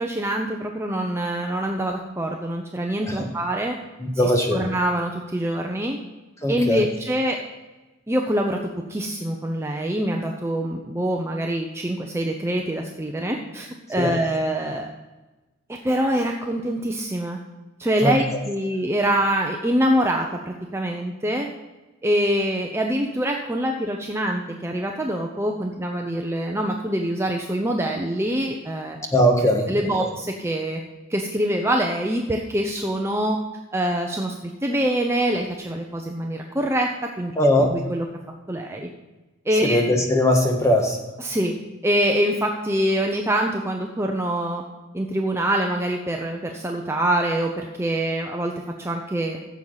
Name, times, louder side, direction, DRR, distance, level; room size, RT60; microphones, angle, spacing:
voice 1, 0.0-3.7 4.5-6.0 6.5-7.4 8.1-8.6 8.9-14.9 15.7-17.4 17.8-21.5 22.0-29.0 29.7-30.8 31.1-33.4 33.7-37.3 37.7-38.1 38.5-38.9 39.5-39.8 41.2-41.5 41.8-44.6 44.9-48.5 48.8-49.4, right 1 dB, 15° right, 1 dB, 0.7 m, -24 dB
voice 2, 4.0-4.7 6.4-6.8 14.0-14.1 18.0-18.2 29.1-29.7 30.0-30.1 37.4-37.8 39.6-41.0, left 1 dB, 15° left, 2 dB, 1.5 m, -20 dB
15.0 x 7.2 x 4.0 m, 1.1 s
head